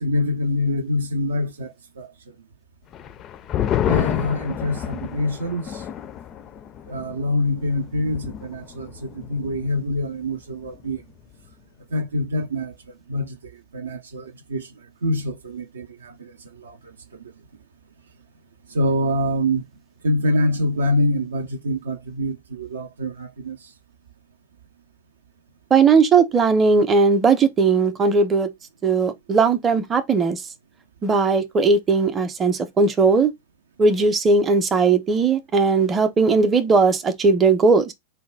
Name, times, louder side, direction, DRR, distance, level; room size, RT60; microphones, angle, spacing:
voice 1, 0.0-2.1 3.9-5.8 6.9-11.0 11.9-12.7 13.1-14.7 15.0-17.2 18.7-19.6 20.0-23.6, left 1 dB, 70° right, 0.4 m, -25 dB
sound 1, 2.9-9.9 10.2-10.3 10.6-11.1, left 10 dB, 30° left, 0.4 m, -29 dB
voice 2, 25.7-28.5 28.8-30.4 31.0-33.3 33.8-37.9, right 4 dB, 20° right, 0.6 m, -18 dB
4.1 x 2.1 x 3.3 m
figure-of-eight pair, 90°, 0 cm